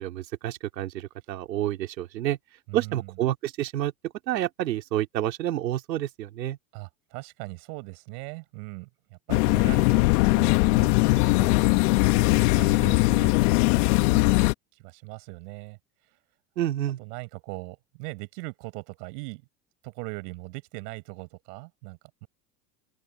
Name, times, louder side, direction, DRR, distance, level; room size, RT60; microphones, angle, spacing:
voice 1, 0.0-2.4 2.7-6.6 16.6-17.0, right 13 dB, 80° right, 3.0 m, -29 dB
voice 2, 2.7-3.1 6.7-13.6 14.1-14.4 14.8-15.8 17.0-19.4 19.8-22.3, right 28 dB, 65° right, 5.8 m, -40 dB
sound 1, 9.3-14.5, left 24 dB, 65° left, 1.7 m, -20 dB
open air
hypercardioid pair, 90°, 50 cm